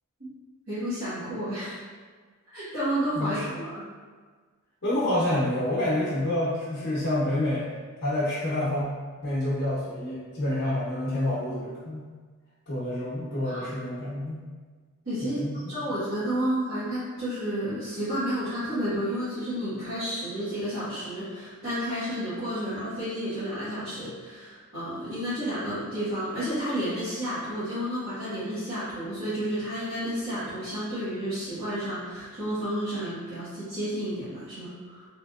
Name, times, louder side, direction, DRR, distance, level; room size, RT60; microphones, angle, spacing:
voice 1, 0.7-1.8 2.5-3.8 13.4-13.7 15.0-15.4 15.7-35.1, equal, 60° right, -16 dB, 1.4 m, -31 dB
voice 2, 3.1-3.5 4.8-7.7 8.0-8.9 9.2-12.0 12.7-14.4 15.2-15.6, left 1 dB, 55° left, -11 dB, 0.8 m, -28 dB
3.3 x 3.0 x 2.5 m, 1.5 s
head